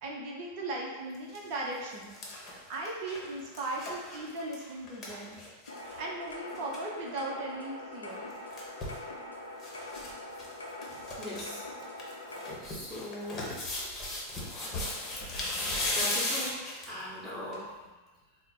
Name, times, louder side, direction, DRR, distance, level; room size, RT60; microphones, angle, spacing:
voice 1, 0.0-2.2 2.5-5.4 5.8-8.3, right 2 dB, 45° right, -2 dB, 0.7 m, -38 dB
sound 1, 1.1-1.4 1.8-6.0 6.3-6.4 6.6-6.8 8.1-9.0 9.6-10.1 10.4-10.5 10.8-11.4 11.8-17.0 17.5-17.6, left 2 dB, 25° left, 1.0 m, -36 dB
sound 2, 5.7-12.5, left 1 dB, 75° left, 0.5 m, -43 dB
voice 2, 11.2-11.6 12.6-13.4 15.5-16.5 16.8-17.9, left 1 dB, ahead, -10 dB, 1.2 m, -40 dB
4.2 x 2.1 x 4.0 m, 1.2 s
figure-of-eight pair, 90°, 0 cm